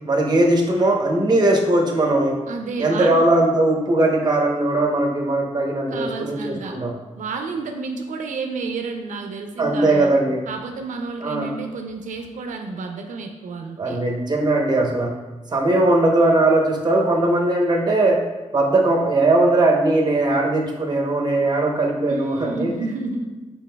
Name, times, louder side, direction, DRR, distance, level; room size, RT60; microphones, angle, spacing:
voice 1, 0.0-2.4 2.8-6.9 9.6-10.4 11.2-11.5 13.8-15.2 15.5-18.2 18.5-22.7, right 2 dB, 35° right, 1 dB, 0.8 m, -19 dB
voice 2, 2.5-3.3 5.9-6.8 7.2-10.1 10.5-14.0 22.1-23.3, right 4 dB, 85° right, 4 dB, 0.4 m, -30 dB
5.9 x 3.9 x 2.2 m, 1.2 s
wide cardioid pair, 115°, 13 cm